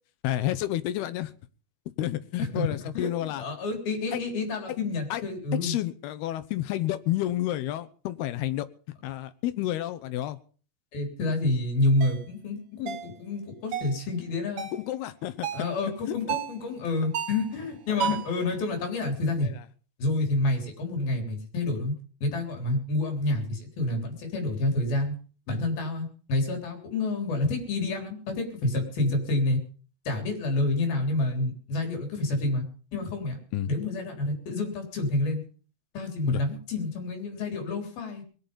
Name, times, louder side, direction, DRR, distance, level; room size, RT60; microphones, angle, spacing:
voice 1, 0.2-1.3 2.0-3.4 4.1-4.2 5.1-5.2 5.6-8.7 9.0-10.4 14.7-15.5 16.1-16.4 17.9-18.1 19.4-19.6 33.5-33.7 36.3-36.4, left 13 dB, 90° left, 13 dB, 3.0 m, -30 dB
voice 2, 2.4-5.8 10.9-14.7 15.5-19.5 20.0-22.0 22.2-25.2 25.5-29.6 30.1-32.7 32.9-33.4 33.7-35.4 35.9-38.2, left 2 dB, 70° left, 4 dB, 5.6 m, -28 dB
sound 1, 12.0-12.2 12.9-13.1 13.7-14.0 14.6-14.8 15.4-15.7 16.3-16.6 17.1-17.5 18.0-18.4, right 9 dB, 80° right, 1.3 m, -32 dB
21.0 x 11.0 x 5.4 m, 0.41 s
omnidirectional pair, 4.5 m